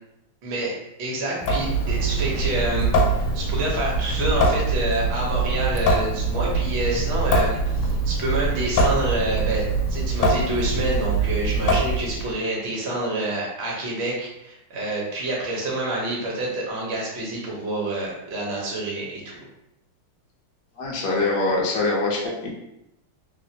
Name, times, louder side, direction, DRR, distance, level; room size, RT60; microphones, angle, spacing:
voice 1, 0.4-0.7 1.0-19.4, right 2 dB, 60° right, -3 dB, 0.7 m, -27 dB
Water tap faucet / Sink (filling or washing) / Drip, 1.4-12.3, right 2 dB, 85° left, 1.4 m, -23 dB
voice 2, 20.8-22.5, left 2 dB, 65° left, -3 dB, 0.9 m, -24 dB
3.4 x 2.1 x 2.7 m, 0.85 s
omnidirectional pair, 2.3 m